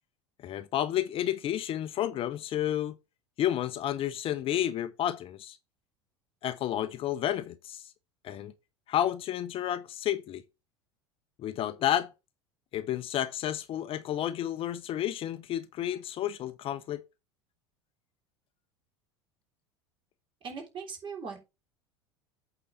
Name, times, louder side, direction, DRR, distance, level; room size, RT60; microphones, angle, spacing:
voice 1, 0.4-3.0 3.4-5.6 6.4-7.8 8.2-8.5 8.9-10.4 11.4-12.1 12.7-17.0, left 11 dB, 40° left, 0.8 m, -31 dB
voice 2, 20.4-21.4, right 5 dB, 35° right, 3.5 m, -39 dB
8.5 x 4.1 x 5.6 m
figure-of-eight pair, 75°, 14 cm